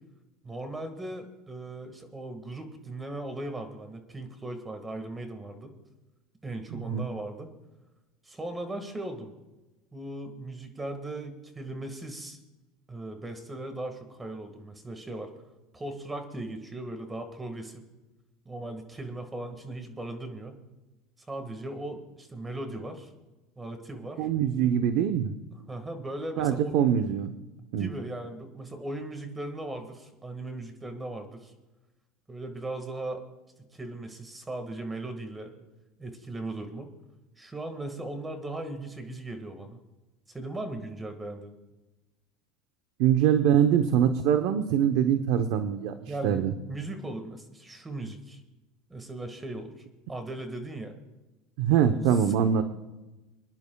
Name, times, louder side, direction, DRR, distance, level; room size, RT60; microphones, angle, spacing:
voice 1, 0.4-5.7 6.4-7.5 8.2-9.3 9.9-12.4 12.9-15.3 15.7-17.8 18.4-20.6 21.3-23.1 23.5-24.3 25.7-26.8 27.8-31.5 32.3-33.2 33.6-35.5 36.0-36.9 37.4-39.8 40.3-41.5 46.1-48.4 48.9-49.7 50.1-50.9 51.9-52.0, right 2 dB, 15° right, 7 dB, 1.8 m, -38 dB
voice 2, 6.7-7.1 24.2-25.3 26.4-27.3 27.7-27.9 43.0-46.5 51.6-52.6, right 9 dB, 65° right, 8 dB, 0.8 m, -24 dB
27.5 x 10.5 x 2.3 m, 1.1 s
supercardioid pair, 125°, 0 cm